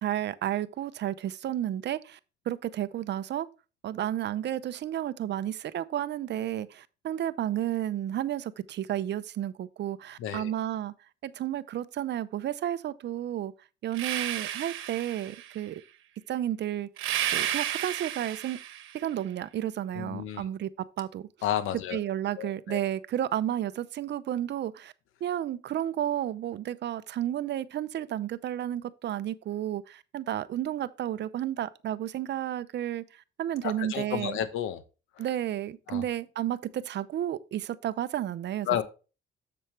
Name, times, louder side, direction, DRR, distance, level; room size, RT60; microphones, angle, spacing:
voice 1, 0.0-2.2 2.5-3.5 3.8-10.9 11.2-13.5 13.8-15.8 16.3-18.6 18.9-21.3 21.9-24.9 25.2-34.4 35.2-38.8, right 11 dB, 60° right, 0.6 m, -32 dB
voice 2, 10.2-10.5 19.9-20.4 21.4-22.0 22.4-22.8 33.6-34.8 35.2-35.3 35.9-36.1 38.7-38.8, left 11 dB, 90° left, 1.0 m, -31 dB
sound 1, 13.9-15.6 17.0-19.0, right 11 dB, 90° right, 1.1 m, -32 dB
7.5 x 7.0 x 3.2 m
cardioid pair, 90°, 20 cm